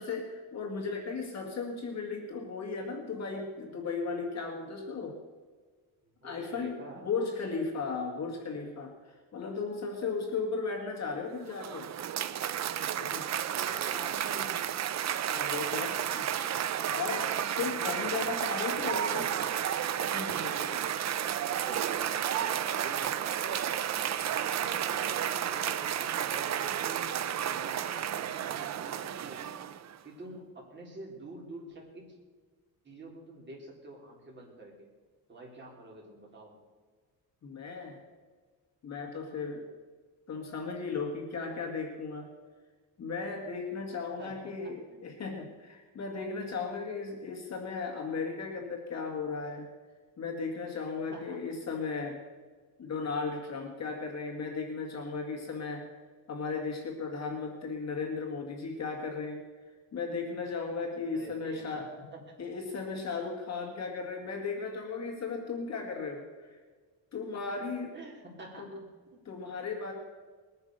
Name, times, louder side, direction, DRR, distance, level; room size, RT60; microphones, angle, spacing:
voice 1, 0.0-5.2 6.2-6.7 7.0-11.9 13.0-13.3 15.3-16.5 16.9-19.3 20.1-20.9 37.4-38.0 38.8-39.7 40.3-42.3 43.0-49.7 50.2-52.2 52.8-55.9 56.3-59.4 59.9-61.9 62.4-66.6 67.1-67.9 68.6-68.7 69.3-69.9, left 4 dB, 45° left, 1 dB, 1.9 m, -36 dB
voice 2, 6.0-7.1 13.5-14.7 18.0-18.3 18.6-19.8 21.5-23.7 24.2-27.1 27.5-29.6 30.0-32.1 32.8-34.9 35.3-36.6 44.2-44.7 51.1-51.5 61.1-62.4 67.9-68.9, right 2 dB, 30° right, -2 dB, 3.9 m, -48 dB
Cheering / Applause, 11.3-30.0, right 10 dB, 45° right, 0.6 m, -32 dB
20.0 x 9.7 x 6.6 m, 1.5 s
cardioid pair, 175°, 38 cm